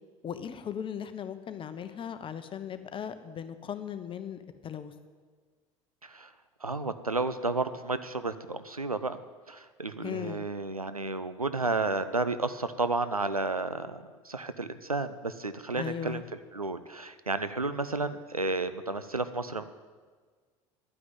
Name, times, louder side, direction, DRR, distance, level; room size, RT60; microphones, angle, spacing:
voice 1, 0.2-4.9 10.0-10.5 15.7-16.2, left 8 dB, 30° left, 10 dB, 1.0 m, -38 dB
voice 2, 6.6-9.2 9.5-16.2 16.5-19.6, right 3 dB, 90° right, 12 dB, 0.6 m, -32 dB
11.0 x 9.3 x 9.1 m, 1.5 s
figure-of-eight pair, 70°, 18 cm